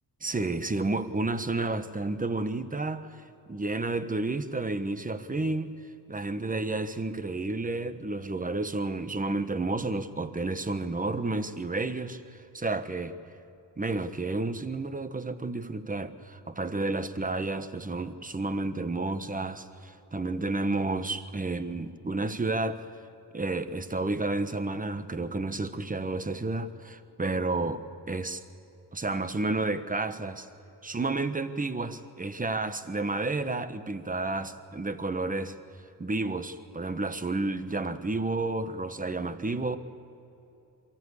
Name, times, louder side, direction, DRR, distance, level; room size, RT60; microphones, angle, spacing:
voice 1, 0.2-3.1 3.5-5.7 6.1-12.2 12.5-13.2 13.8-22.8 23.3-28.4 28.9-30.5 30.8-35.5 36.0-39.8, right 2 dB, 20° right, 11 dB, 1.3 m, -31 dB
23.0 x 15.0 x 8.4 m, 2.9 s
cardioid pair, 60°, 42 cm